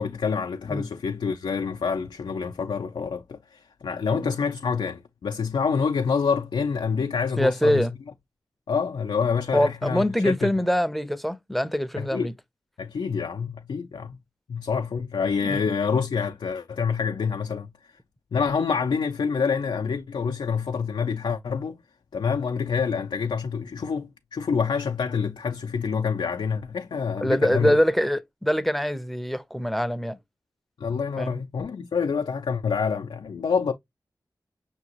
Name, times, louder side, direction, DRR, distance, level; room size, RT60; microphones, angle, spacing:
voice 1, 0.0-7.9 8.7-10.5 12.0-12.3 12.8-14.2 14.5-17.9 18.3-21.8 22.1-27.8 30.8-33.7, left 6 dB, 90° left, 0.4 m, -27 dB
voice 2, 7.4-7.9 9.5-12.3 15.4-15.6 27.2-30.2 31.2-31.4, equal, ahead, 0.6 m, -24 dB
5.8 x 2.8 x 2.9 m
cardioid pair, 45°, 8 cm